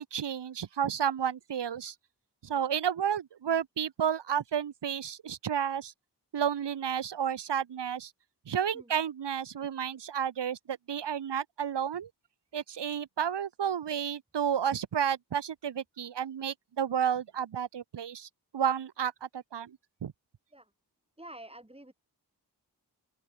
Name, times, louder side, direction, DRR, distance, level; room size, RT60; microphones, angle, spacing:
voice 1, 0.0-1.9 2.4-5.9 6.3-8.1 8.5-12.1 12.5-18.3 18.5-19.7 20.0-20.1, right 8 dB, 80° right, 0.9 m, -31 dB
voice 2, 21.2-21.9, right 1 dB, 15° right, 6.3 m, -48 dB
open air
wide cardioid pair, 80°, 41 cm